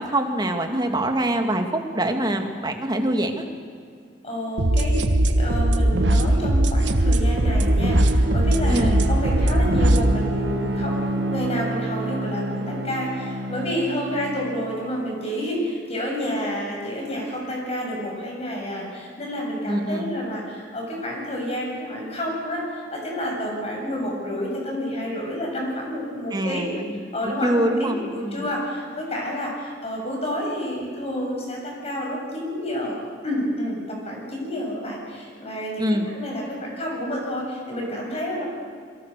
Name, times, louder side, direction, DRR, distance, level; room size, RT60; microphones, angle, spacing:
voice 1, 0.0-3.4 8.7-8.9 19.7-20.1 26.3-26.9 27.4-28.4 35.8-36.1, right 1 dB, 25° right, 4 dB, 2.4 m, -24 dB
voice 2, 4.2-5.0 5.2-26.8 27.1-33.0 33.2-38.4, equal, 35° left, -1 dB, 7.9 m, -29 dB
sound 1, 4.6-10.0, right 1 dB, 90° right, 1.4 m, -19 dB
Bowed string instrument, 6.8-14.6, right 1 dB, 70° right, 2.3 m, -30 dB
27.5 x 23.0 x 6.8 m, 2.2 s
head